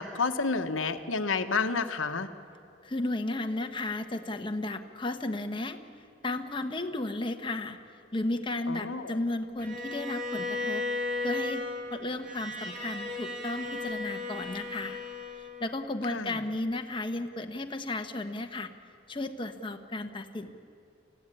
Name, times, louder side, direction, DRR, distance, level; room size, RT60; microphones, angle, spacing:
voice 1, 0.0-2.3 8.7-9.2 16.1-16.4, left 4 dB, 90° left, 8 dB, 1.2 m, -30 dB
voice 2, 2.8-5.8 6.2-7.8 8.1-10.8 11.2-15.0 15.4-18.7 19.1-20.5, left 2 dB, 25° left, 6 dB, 1.2 m, -34 dB
Bowed string instrument, 9.6-15.8, left 2 dB, 40° right, 3.0 m, -35 dB
25.0 x 16.0 x 9.9 m, 2.6 s
head